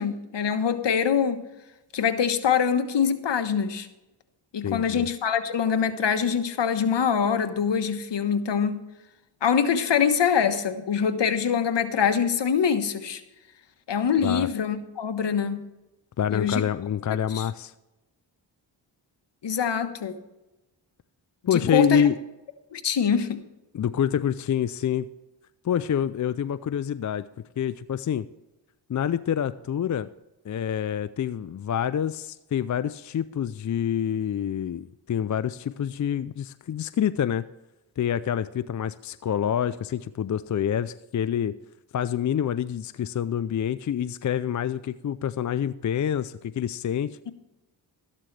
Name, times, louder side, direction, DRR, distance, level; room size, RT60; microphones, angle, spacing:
voice 1, 0.0-1.4 1.9-3.9 4.5-8.8 9.4-13.2 13.9-15.6 16.3-16.6 17.3-17.4 19.4-20.1 21.5-22.0 22.7-23.4, left 7 dB, 65° left, 9 dB, 1.3 m, -24 dB
voice 2, 4.6-5.1 14.2-14.5 16.2-17.7 21.5-22.2 23.7-25.1 25.6-27.3 27.6-28.2 28.9-30.1 30.4-37.4 38.0-41.6 41.9-47.2, left 9 dB, 40° left, 14 dB, 0.5 m, -27 dB
13.5 x 11.5 x 3.3 m, 1.0 s
cardioid pair, 60°, 46 cm